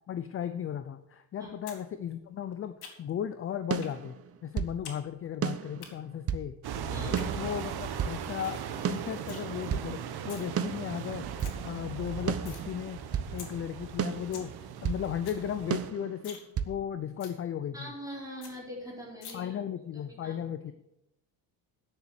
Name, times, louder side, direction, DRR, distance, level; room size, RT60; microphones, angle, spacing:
voice 1, 0.1-4.1 4.4-6.6 7.2-11.3 11.6-13.0 13.3-14.5 14.8-16.4 16.7-17.9 19.3-20.7, left 9 dB, 30° left, 11 dB, 0.5 m, -36 dB
sound 1, 1.7-1.8 2.1-3.2 3.8-4.0 4.3-5.0 5.3-5.9 6.9-7.3 7.7-7.8 8.1-8.2 8.4-8.6 8.9-9.4 10.1-10.5 10.9-11.0 11.2-11.5 11.9-12.6 13.0-13.1 13.4-13.5 13.9-14.0 14.2-14.5 14.8-14.9 15.1-15.4 15.8-15.9 16.2-16.5 16.8-16.9 17.2-17.4 17.8-17.9 18.1-18.2 18.4-18.5 19.2-19.3, left 7 dB, 60° left, 2.7 m, -46 dB
sound 2, 3.7-4.8 5.4-6.5 7.1-8.2 8.8-9.9 10.6-11.6 12.3-13.3 14.0-15.1 15.7-16.8, right 8 dB, 35° right, 0.6 m, -33 dB
sound 3, 6.6-15.9, right 7 dB, 65° right, 1.2 m, -38 dB
voice 2, 6.9-7.4 17.7-19.6 19.9-20.4, equal, 10° right, -3 dB, 4.3 m, -42 dB
9.9 x 6.8 x 8.0 m, 0.87 s
cardioid pair, 140°, 41 cm